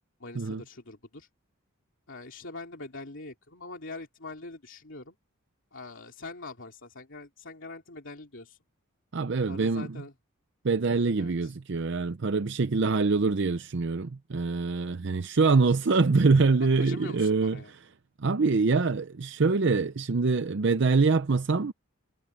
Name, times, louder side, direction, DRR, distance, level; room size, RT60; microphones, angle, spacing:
voice 1, 0.2-1.3 2.1-5.2 5.7-8.6 9.4-10.1 11.2-11.5 16.8-17.7, left 3 dB, 60° left, 3.1 m, -43 dB
voice 2, 9.1-10.0 10.6-17.6 18.2-21.7, right 4 dB, 55° right, 0.6 m, -24 dB
head